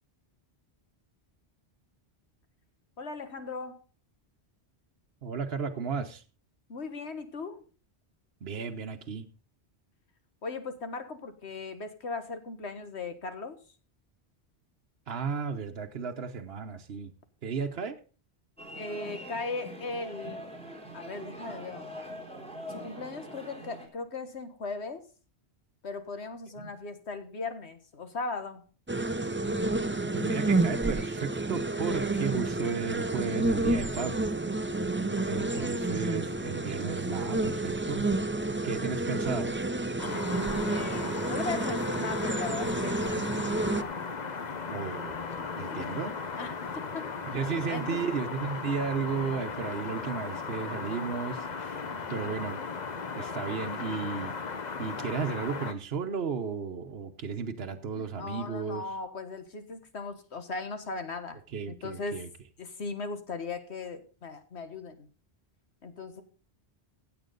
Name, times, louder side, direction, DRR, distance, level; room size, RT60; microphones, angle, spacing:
voice 1, 3.0-3.8 6.7-7.6 10.4-13.6 18.8-20.4 20.9-21.9 22.7-25.0 25.8-28.7 35.2-35.6 40.3-43.3 45.4-45.9 46.4-47.1 47.5-48.0 51.9-52.4 57.9-61.4 61.7-62.2 62.6-65.1 65.8-66.2, left 4 dB, 80° left, 9 dB, 1.8 m, -38 dB
voice 2, 5.2-6.2 8.4-9.2 15.1-17.1 17.4-18.0 26.6-26.7 30.1-34.3 35.3-38.1 38.6-39.5 40.5-40.6 44.7-45.2 45.6-46.1 47.3-51.8 52.1-52.8 53.2-54.3 54.8-58.8 61.5-62.3, right 6 dB, 65° right, 4 dB, 1.2 m, -34 dB
sound 1, 18.6-23.9, equal, 5° left, 3.6 m, -43 dB
sound 2, 28.9-43.8, right 2 dB, 15° right, 0.5 m, -30 dB
sound 3, 40.0-55.7, left 5 dB, 45° left, 1.0 m, -37 dB
16.0 x 8.0 x 3.8 m, 0.36 s
omnidirectional pair, 1.1 m